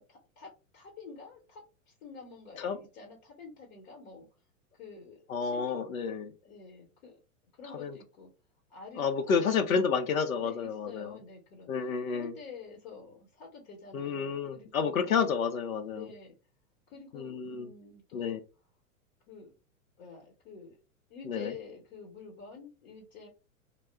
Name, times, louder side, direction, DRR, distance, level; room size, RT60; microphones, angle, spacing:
voice 1, 0.0-4.3 4.7-7.2 7.5-8.3 8.7-9.9 10.2-11.7 12.1-15.3 15.9-16.4 16.9-18.4 19.3-19.5 20.0-20.8 21.1-23.3, left 5 dB, 50° left, -1 dB, 1.0 m, -49 dB
voice 2, 5.3-6.3 7.7-8.0 9.0-11.1 11.7-12.3 13.9-16.1 17.1-17.7 18.1-18.4 21.3-21.5, left 6 dB, 75° left, 8 dB, 0.6 m, -30 dB
2.1 x 2.0 x 3.3 m, 0.32 s
figure-of-eight pair, 95°, 42 cm